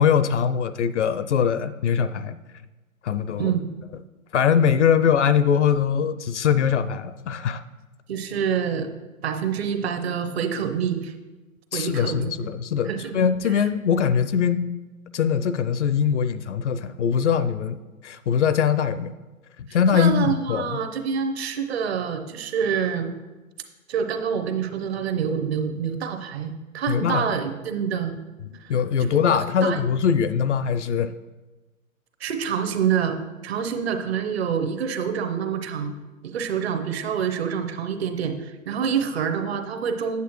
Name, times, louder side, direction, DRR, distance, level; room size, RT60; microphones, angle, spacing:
voice 1, 0.0-2.4 3.0-3.5 4.3-7.6 11.7-14.6 15.1-17.8 18.0-19.1 19.6-20.8 26.9-27.2 28.7-31.2, left 7 dB, 55° left, 13 dB, 0.5 m, -22 dB
voice 2, 3.4-3.7 8.1-8.9 9.2-11.1 11.7-12.3 12.9-13.2 13.5-13.6 19.9-23.1 23.9-28.2 28.6-29.1 29.6-29.8 32.2-33.2 33.4-36.0 36.2-40.2, right 7 dB, 45° right, 6 dB, 0.9 m, -27 dB
8.3 x 8.0 x 3.1 m, 1.2 s
figure-of-eight pair, 125°, 42 cm